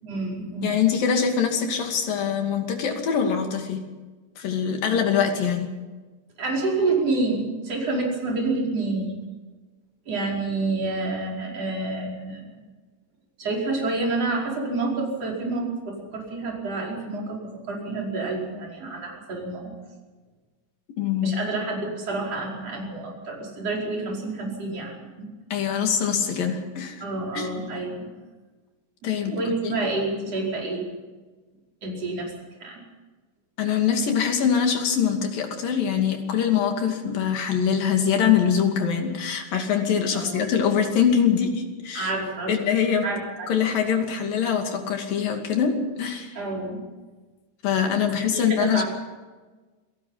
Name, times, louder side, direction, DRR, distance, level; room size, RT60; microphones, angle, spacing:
voice 1, 0.0-0.9 6.4-9.1 10.1-12.5 13.4-17.4 17.6-19.7 21.2-25.3 27.0-28.1 29.3-30.8 31.8-32.3 32.6-32.8 40.1-40.5 41.9-42.6 43.0-43.5 46.4-46.8 48.3-48.8, right 3 dB, 45° right, -2 dB, 6.0 m, -28 dB
voice 2, 0.6-3.8 4.4-5.7 21.0-21.3 25.5-27.0 27.3-27.5 29.0-29.4 29.6-29.8 33.6-42.1 42.5-43.1 43.5-46.4 47.6-48.8, left 7 dB, 85° left, 4 dB, 4.3 m, -23 dB
27.0 x 18.0 x 5.7 m, 1.3 s
omnidirectional pair, 3.9 m